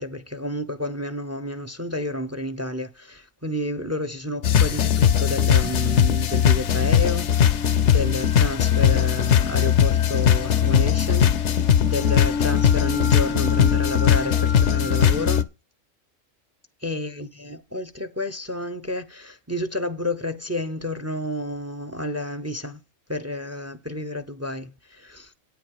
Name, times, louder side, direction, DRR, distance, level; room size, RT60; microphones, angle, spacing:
voice 1, 0.0-15.5 16.8-22.8 23.1-25.3, left 1 dB, 15° right, 0.6 m, -30 dB
sound 1, 4.4-15.4, left 8 dB, 65° left, 1.0 m, -19 dB
9.3 x 9.1 x 4.8 m
omnidirectional pair, 1.4 m